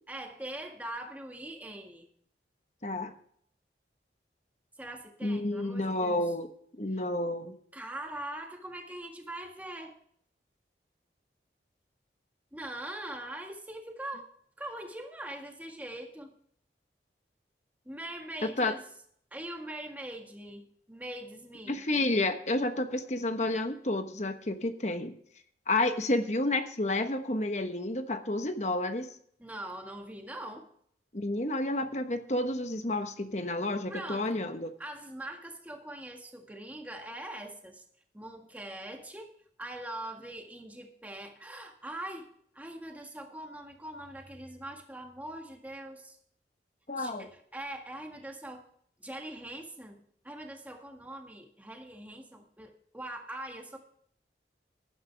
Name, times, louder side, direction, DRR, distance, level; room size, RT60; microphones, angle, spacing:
voice 1, 0.1-2.1 4.8-6.2 6.9-7.0 7.7-10.0 12.5-14.3 14.6-16.3 17.8-18.8 19.3-21.8 29.4-30.7 33.9-34.5 34.8-37.8 38.1-42.3 42.5-46.2 47.0-48.6 49.0-53.8, right 1 dB, 10° right, 2 dB, 1.8 m, -42 dB
voice 2, 2.8-3.1 5.2-6.5 6.8-7.6 18.6-18.7 21.7-25.1 25.7-29.1 31.1-34.7 46.9-47.3, left 2 dB, 40° left, 8 dB, 1.2 m, -30 dB
15.0 x 11.5 x 3.4 m, 0.63 s
head